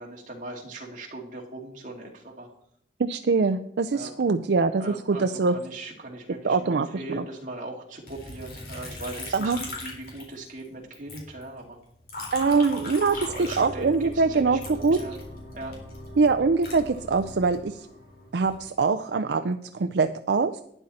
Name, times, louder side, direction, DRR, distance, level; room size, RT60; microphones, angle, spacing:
voice 1, 0.0-2.5 3.9-4.3 4.8-11.8 13.1-15.2 15.5-15.8, right 2 dB, 45° right, 0 dB, 2.3 m, -39 dB
voice 2, 3.0-5.6 6.4-7.2 9.3-9.6 12.3-15.0 16.2-17.9 18.3-20.6, right 4 dB, 75° right, 9 dB, 0.5 m, -23 dB
Liquid, 8.1-10.7 10.9-14.1 14.6-17.6 18.2-18.7, left 2 dB, 55° left, 3.5 m, -39 dB
sound 1, 13.0-18.3, left 1 dB, 75° left, 3.0 m, -43 dB
11.5 x 9.8 x 4.2 m, 0.72 s
head